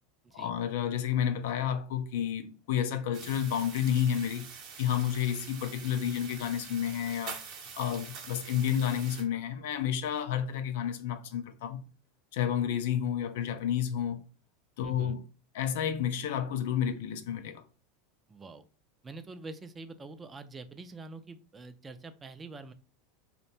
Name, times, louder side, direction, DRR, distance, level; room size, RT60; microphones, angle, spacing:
voice 1, 0.3-4.5 4.8-7.4 7.8-11.8 12.3-14.2 14.8-15.2 15.5-17.6, left 9 dB, 70° left, 0.3 m, -30 dB
sound 1, 3.1-9.2, right 6 dB, 55° right, 0.7 m, -45 dB
voice 2, 14.8-15.2 18.3-18.6 19.0-22.7, right 3 dB, 20° right, 0.3 m, -45 dB
2.5 x 2.1 x 2.7 m
hypercardioid pair, 100°, 0 cm